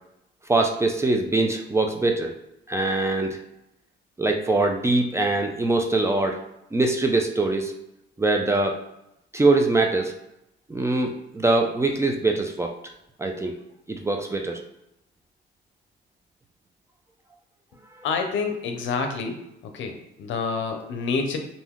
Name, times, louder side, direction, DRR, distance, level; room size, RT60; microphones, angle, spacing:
voice 1, 0.5-2.3 2.7-3.4 4.2-6.4 6.7-7.7 8.2-8.8 9.3-10.1 10.7-12.7 13.2-13.5 13.9-14.6, right 2 dB, 15° right, 3 dB, 0.3 m, -23 dB
voice 2, 18.0-19.4 19.7-21.4, left 4 dB, 70° left, 4 dB, 0.6 m, -27 dB
2.6 x 2.2 x 3.5 m, 0.84 s
cardioid pair, 90°, 20 cm